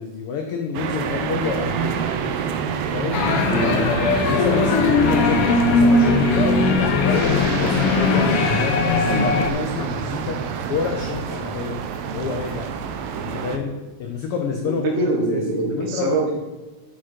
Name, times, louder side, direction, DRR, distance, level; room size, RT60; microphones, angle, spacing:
voice 1, 0.0-2.0 2.9-3.3 4.3-10.4 10.7-11.8 12.1-12.7 13.2-14.9 15.3-16.4, left 5 dB, 90° left, 4 dB, 1.2 m, -28 dB
sound 1, 0.7-13.6, right 7 dB, 80° right, 1.4 m, -27 dB
sound 2, 3.1-9.5, left 3 dB, 70° left, 1.4 m, -19 dB
voice 2, 3.5-3.9 14.6-16.4, right 2 dB, 55° right, 1 dB, 0.7 m, -23 dB
7.4 x 6.0 x 4.4 m, 1.2 s
omnidirectional pair, 3.4 m